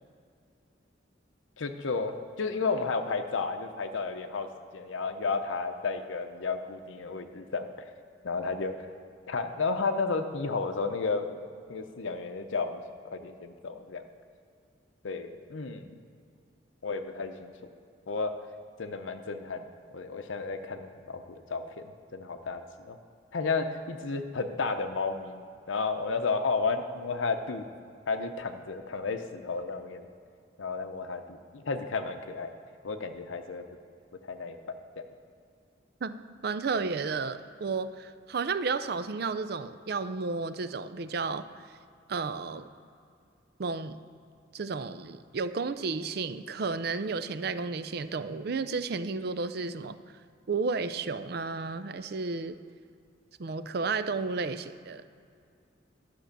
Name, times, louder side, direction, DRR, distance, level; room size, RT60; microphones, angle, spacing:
voice 1, 1.6-4.5 4.7-7.7 8.2-8.8 9.3-11.4 11.7-14.0 15.0-16.0 16.8-17.5 18.1-18.3 18.8-19.6 19.9-21.8 22.1-23.0 23.3-25.4 25.7-27.7 28.1-30.1 30.6-32.5 32.8-33.6 34.3-35.0, left 4 dB, 85° left, 7 dB, 0.7 m, -32 dB
voice 2, 36.0-41.4 42.1-42.7 43.6-44.0 44.5-50.0 50.5-52.5 53.4-55.0, right 4 dB, 55° right, 12 dB, 0.5 m, -32 dB
11.5 x 6.0 x 6.7 m, 2.3 s
head